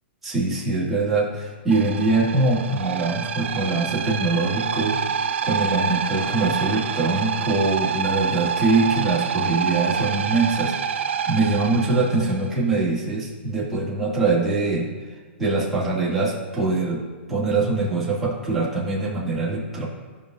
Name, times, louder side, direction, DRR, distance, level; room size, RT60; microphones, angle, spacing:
voice 1, 0.2-14.9 15.4-17.0 17.3-19.8, right 3 dB, 5° right, -8 dB, 2.4 m, -23 dB
sound 1, 1.7-12.5, right 7 dB, 75° right, 0.5 m, -27 dB
16.5 x 5.5 x 2.6 m, 1.5 s
hypercardioid pair, 140°, 7 cm